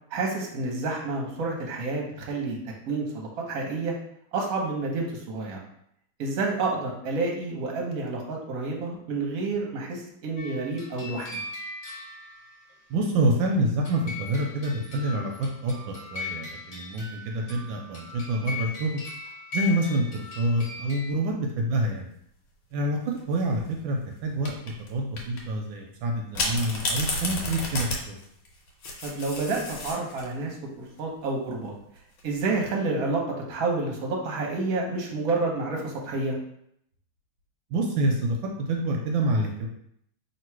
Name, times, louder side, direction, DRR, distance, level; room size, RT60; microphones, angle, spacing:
voice 1, 0.1-2.6 2.9-3.9 4.3-5.6 6.2-11.4 29.0-31.7 32.2-33.2 33.5-36.4, right 3 dB, 55° right, -1 dB, 1.2 m, -29 dB
sound 1, 10.4-12.8 13.9-21.1, left 4 dB, 50° left, 1.2 m, -39 dB
voice 2, 12.9-19.0 19.5-22.1 22.7-24.6 24.9-28.2 37.7-39.7, right 1 dB, 80° right, 1 dB, 1.3 m, -27 dB
sound 2, 23.2-23.6 24.4-24.9 25.2-25.4 26.3-30.3 32.0-32.4, left 2 dB, 75° left, 1.7 m, -31 dB
3.0 x 3.0 x 4.5 m, 0.72 s
omnidirectional pair, 2.2 m